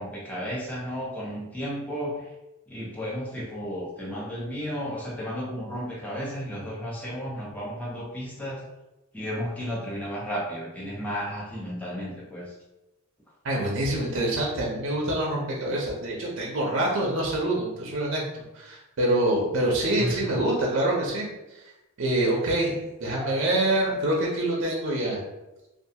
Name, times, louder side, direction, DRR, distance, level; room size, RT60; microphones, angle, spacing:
voice 1, 0.0-2.3 2.7-8.7 9.1-12.5 20.0-20.3 23.2-23.3, equal, 5° left, -5 dB, 0.5 m, -33 dB
voice 2, 13.4-21.6 22.0-25.2, right 1 dB, 60° right, -3 dB, 0.5 m, -26 dB
2.4 x 2.2 x 2.7 m, 0.98 s
head